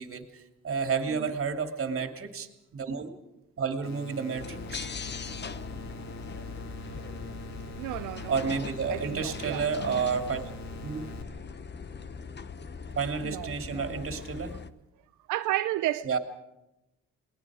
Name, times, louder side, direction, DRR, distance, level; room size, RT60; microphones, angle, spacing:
voice 1, 0.0-3.1 3.6-4.9 8.3-10.4 10.8-11.0 12.9-14.5 16.0-16.2, right 5 dB, 45° right, 2.8 m, -31 dB
sound 1, 3.8-11.2, right 1 dB, 65° left, 2.6 m, -44 dB
sound 2, 4.4-14.7, left 6 dB, 35° left, 1.0 m, -40 dB
voice 2, 7.8-10.0 13.2-14.1 15.3-16.2, right 15 dB, 90° right, 0.7 m, -34 dB
29.5 x 20.0 x 5.0 m
cardioid pair, 90°, 30 cm